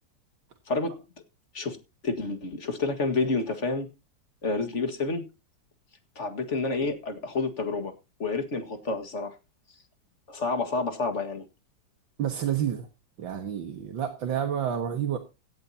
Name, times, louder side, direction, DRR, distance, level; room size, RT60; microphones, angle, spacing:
voice 1, 2.0-3.9 4.4-5.3 6.2-7.9 8.2-9.3 10.3-11.5, left 3 dB, 40° left, 2.0 m, -29 dB
voice 2, 12.2-12.9 13.2-15.2, right 9 dB, 80° right, 2.3 m, -29 dB
17.0 x 10.5 x 2.8 m
omnidirectional pair, 2.1 m